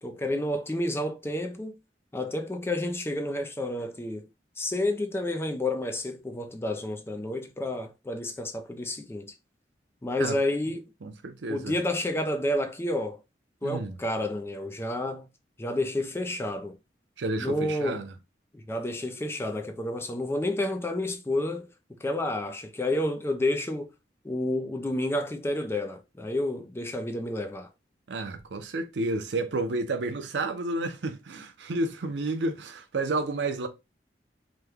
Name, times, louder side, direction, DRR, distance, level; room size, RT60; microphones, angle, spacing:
voice 1, 0.0-1.8 2.1-4.3 4.6-9.3 10.0-10.9 11.5-13.2 13.6-15.3 15.6-16.8 17.4-18.0 18.5-23.9 24.2-27.7, left 1 dB, 15° left, 0.4 m, -30 dB
voice 2, 11.0-11.7 13.6-14.0 17.2-18.1 28.1-33.7, right 2 dB, 90° right, 0.6 m, -31 dB
3.0 x 2.2 x 3.4 m
head